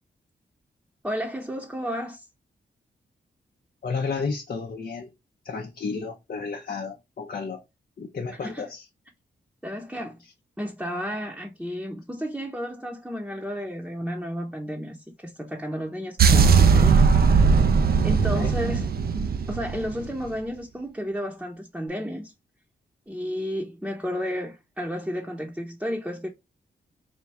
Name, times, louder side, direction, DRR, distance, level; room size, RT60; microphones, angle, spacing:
voice 1, 1.0-2.3 8.3-8.7 9.6-10.2 10.6-17.1 18.0-18.9 19.5-22.3 23.1-26.3, equal, 5° right, 0.9 m, -32 dB
voice 2, 3.8-5.1 5.4-7.6 8.0-8.8 18.3-18.5, left 4 dB, 50° left, 0.7 m, -32 dB
sound 1, 16.2-20.3, right 5 dB, 55° right, 0.6 m, -19 dB
3.5 x 2.3 x 4.1 m
cardioid pair, 60°, 19 cm